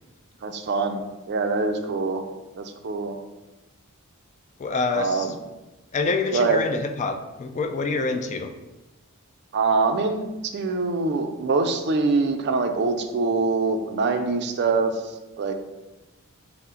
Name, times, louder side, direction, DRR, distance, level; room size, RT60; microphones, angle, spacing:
voice 1, 0.4-2.2 2.5-3.2 4.9-5.3 6.3-6.6 9.5-15.5, right 3 dB, 50° right, 6 dB, 0.4 m, -24 dB
voice 2, 4.6-5.3 5.9-8.5, left 3 dB, 35° left, 6 dB, 0.3 m, -26 dB
5.5 x 2.1 x 3.7 m, 1.0 s
head